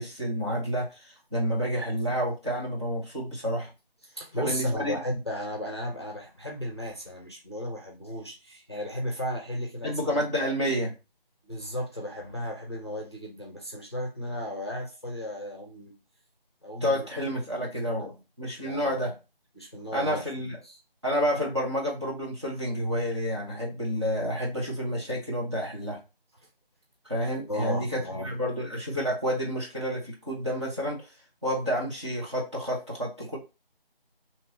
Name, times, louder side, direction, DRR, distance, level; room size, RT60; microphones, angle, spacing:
voice 1, 0.0-3.7 4.4-4.9 9.8-10.9 16.8-18.1 18.4-19.1 19.9-20.6 21.0-26.0 27.1-31.1 31.4-33.4, equal, 30° right, -4 dB, 0.9 m, -29 dB
voice 2, 4.0-10.2 11.4-15.9 16.6-17.7 17.9-18.2 18.6-19.1 19.5-20.8 27.5-28.3, equal, 25° left, 0 dB, 0.7 m, -35 dB
4.5 x 2.9 x 3.0 m, 0.29 s
figure-of-eight pair, 170°, 30 cm